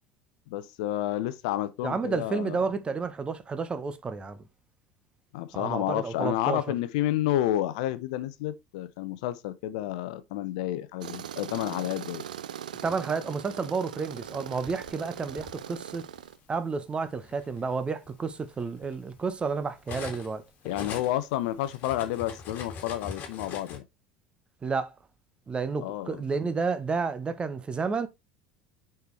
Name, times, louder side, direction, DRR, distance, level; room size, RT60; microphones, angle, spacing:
voice 1, 0.5-2.6 5.3-12.2 20.6-23.8 25.8-26.2, left 13 dB, 60° left, 0.6 m, -30 dB
voice 2, 1.8-4.4 5.5-6.7 12.8-16.1 16.5-20.5 24.6-24.9 25.5-28.1, right 4 dB, 25° right, 0.9 m, -31 dB
Tools, 11.0-16.4, right 10 dB, 75° right, 0.4 m, -40 dB
Cutlery silverware, 14.2-15.5 16.5-16.7 17.1-20.3 20.6-23.8, left 6 dB, 40° left, 1.8 m, -42 dB
6.6 x 4.5 x 3.2 m
figure-of-eight pair, 65°, 4 cm